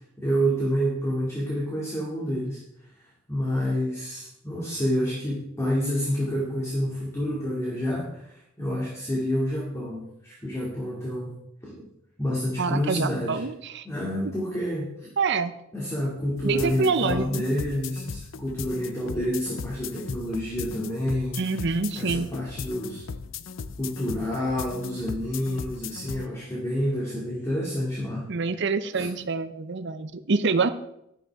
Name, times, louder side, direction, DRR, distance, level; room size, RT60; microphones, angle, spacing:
voice 1, 0.2-2.6 3.3-11.3 11.6-11.8 12.2-13.4 13.8-15.1 15.7-21.6 22.0-23.0 23.8-28.3 28.9-29.1, equal, 15° left, -5 dB, 2.5 m, -28 dB
voice 2, 12.6-13.9 15.2-15.5 16.4-17.4 21.4-22.3 28.3-30.7, right 4 dB, 60° right, 11 dB, 0.7 m, -26 dB
sound 1, 16.4-26.3, left 5 dB, 70° left, 0.5 m, -38 dB
12.0 x 11.0 x 3.6 m, 0.79 s
head